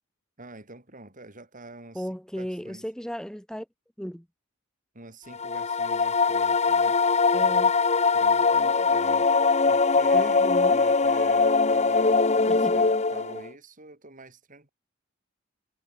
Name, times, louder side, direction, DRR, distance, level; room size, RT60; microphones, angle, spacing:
voice 1, 0.4-2.1 2.4-2.8 4.9-7.0 8.1-9.3 9.7-10.4 10.7-14.7, right 2 dB, 40° right, 7.1 m, -46 dB
voice 2, 1.9-3.7 4.0-4.3 7.3-7.8 10.1-10.9 12.5-12.8, equal, 5° left, 1.6 m, -35 dB
sound 1, 5.3-13.5, left 4 dB, 30° left, 1.3 m, -22 dB
head